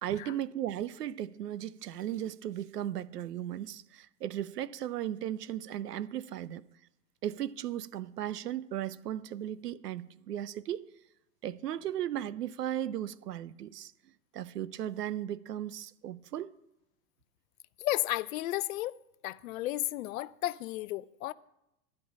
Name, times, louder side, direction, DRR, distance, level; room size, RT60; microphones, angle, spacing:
voice 1, 0.0-6.6 7.2-10.9 11.4-13.9 14.3-16.5, right 11 dB, 80° right, 0.7 m, -36 dB
voice 2, 17.8-19.0 19.2-21.3, left 16 dB, 60° left, 0.5 m, -33 dB
12.5 x 5.4 x 8.3 m
hypercardioid pair, 100°, 47 cm